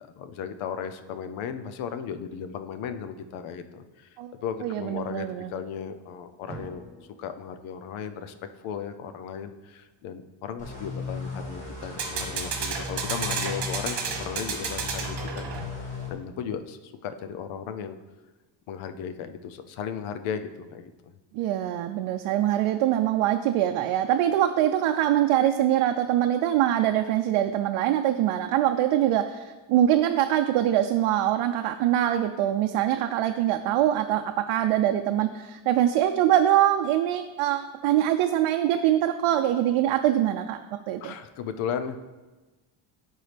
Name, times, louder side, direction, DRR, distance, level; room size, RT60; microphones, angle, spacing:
voice 1, 0.0-6.8 7.2-8.4 8.6-15.5 15.8-18.0 18.7-21.1 41.0-42.0, left 7 dB, 75° left, 9 dB, 0.7 m, -36 dB
voice 2, 4.6-5.5 21.3-40.6 40.9-41.1, right 12 dB, 90° right, 6 dB, 0.6 m, -23 dB
sound 1, 6.5-7.0 11.8-15.9, right 5 dB, 50° right, 1.4 m, -32 dB
sound 2, 10.6-16.1, left 3 dB, 15° left, 1.6 m, -37 dB
12.0 x 4.6 x 3.3 m, 1.2 s
cardioid pair, 170°, 49 cm